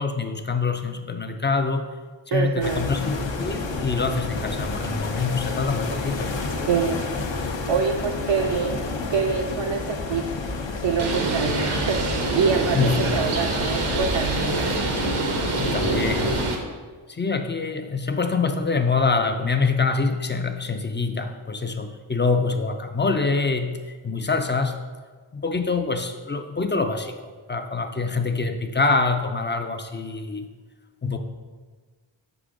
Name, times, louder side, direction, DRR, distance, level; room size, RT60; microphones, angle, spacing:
voice 1, 0.0-1.9 2.3-6.3 11.4-11.5 12.7-13.0 15.2-16.4 17.1-24.8 25.3-30.5 31.0-31.2, left 4 dB, 25° left, 6 dB, 0.4 m, -25 dB
voice 2, 2.3-2.9 6.7-7.0 7.7-8.8 9.1-10.3 10.7-14.6, right 6 dB, 65° right, 2 dB, 0.5 m, -25 dB
sound 1, 2.6-16.5, left 3 dB, 65° left, 0.8 m, -30 dB
Bird, 11.0-16.6, right 3 dB, 90° right, 1.0 m, -25 dB
6.1 x 4.9 x 3.7 m, 1.4 s
wide cardioid pair, 80°, 49 cm